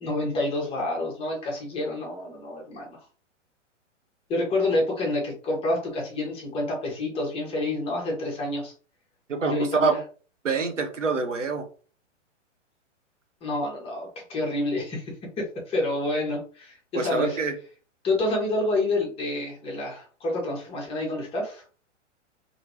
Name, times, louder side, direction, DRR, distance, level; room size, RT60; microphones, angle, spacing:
voice 1, 0.0-3.0 4.3-8.7 9.4-10.0 13.4-17.4 18.0-21.6, left 2 dB, 15° left, -1 dB, 0.9 m, -28 dB
voice 2, 10.4-11.6 16.9-17.5, right 4 dB, 75° right, 6 dB, 0.8 m, -25 dB
2.8 x 2.7 x 2.8 m, 0.39 s
figure-of-eight pair, 110°, 37 cm